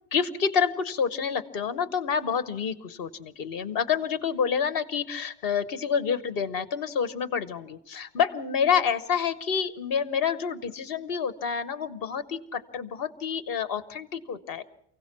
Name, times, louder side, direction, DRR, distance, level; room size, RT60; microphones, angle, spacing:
voice 1, 0.1-14.6, left 7 dB, 55° left, 13 dB, 1.2 m, -28 dB
28.5 x 16.5 x 6.1 m, 0.72 s
omnidirectional pair, 1.2 m